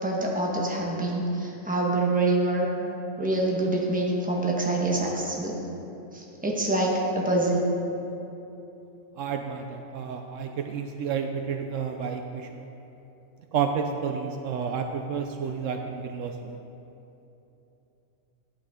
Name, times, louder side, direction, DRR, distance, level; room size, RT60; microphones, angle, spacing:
voice 1, 0.0-2.7 3.2-5.5 6.1-6.9 7.1-7.6, right 2 dB, 5° right, -3 dB, 1.2 m, -26 dB
voice 2, 9.2-12.6 13.5-16.6, right 6 dB, 75° right, 5 dB, 0.9 m, -31 dB
11.0 x 8.8 x 3.7 m, 3.0 s
omnidirectional pair, 1.4 m